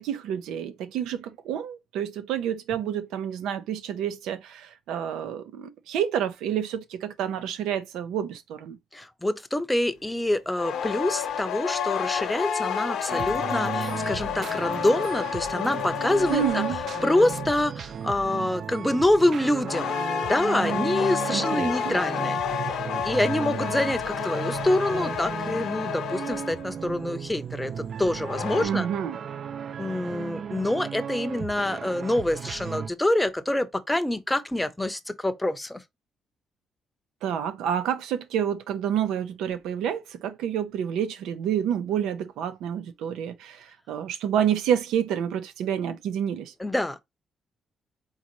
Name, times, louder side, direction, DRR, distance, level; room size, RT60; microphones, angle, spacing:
voice 1, 0.0-8.8 16.3-16.8 21.3-22.0 28.5-29.2 37.2-46.5, right 9 dB, 90° right, 0.7 m, -29 dB
voice 2, 8.9-16.6 17.0-19.9 20.2-22.4 22.7-22.8 23.0-28.9 29.8-35.8 46.6-47.0, left 1 dB, 10° left, 0.7 m, -26 dB
sound 1, 10.6-17.7 19.7-26.8 28.0-28.6, left 8 dB, 75° left, 0.9 m, -30 dB
sound 2, 13.1-32.9, right 7 dB, 55° right, 0.4 m, -35 dB
4.0 x 3.9 x 3.0 m
cardioid pair, 90°, 0 cm